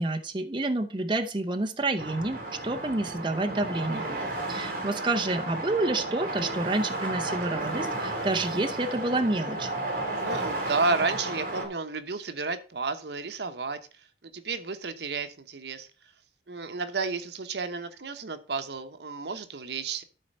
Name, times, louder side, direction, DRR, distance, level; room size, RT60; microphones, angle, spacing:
voice 1, 0.0-4.1 4.5-9.7, right 2 dB, 25° right, 5 dB, 0.7 m, -29 dB
sound 1, 2.0-11.7, right 2 dB, 50° right, 2.7 m, -33 dB
voice 2, 10.2-13.8 14.2-15.9 16.5-20.0, right 4 dB, 75° right, 9 dB, 1.0 m, -32 dB
12.5 x 4.2 x 5.4 m, 0.35 s
head